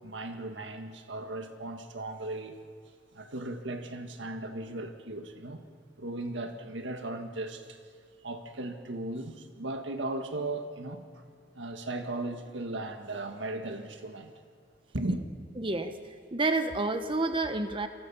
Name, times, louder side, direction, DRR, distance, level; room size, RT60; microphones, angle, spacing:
voice 1, 0.0-2.6 3.1-5.7 6.0-7.8 8.2-11.2 11.5-14.3 14.9-15.2, right 2 dB, 75° right, 1.7 m, -37 dB
voice 2, 15.6-17.9, right 2 dB, 25° right, 1.1 m, -30 dB
28.5 x 22.5 x 5.6 m
head